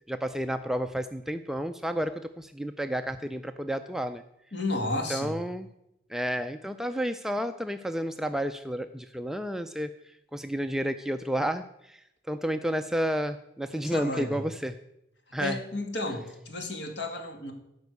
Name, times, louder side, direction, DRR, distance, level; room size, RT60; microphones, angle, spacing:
voice 1, 0.1-4.2 5.1-5.7 6.1-9.9 10.3-14.7 15.3-15.6, equal, ahead, 8 dB, 0.3 m, -31 dB
voice 2, 4.5-5.4 13.7-14.4 15.4-17.5, left 2 dB, 60° left, 4 dB, 2.1 m, -32 dB
15.5 x 5.3 x 8.1 m, 0.84 s
head